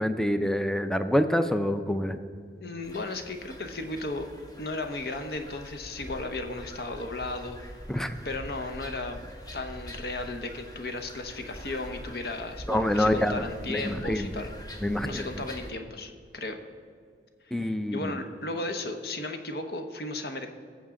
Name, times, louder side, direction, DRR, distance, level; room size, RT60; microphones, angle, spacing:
voice 1, 0.0-2.2 7.9-8.2 12.7-13.4 13.7-14.3 14.8-15.3 17.5-18.2, left 1 dB, 5° left, 9 dB, 0.4 m, -26 dB
voice 2, 2.6-4.3 4.6-7.6 8.2-14.5 15.0-16.6 17.5-20.5, left 2 dB, 60° left, 6 dB, 0.9 m, -35 dB
sound 1, 2.8-15.7, equal, 20° left, 0.9 m, -44 dB
18.0 x 7.2 x 3.7 m, 2.2 s
head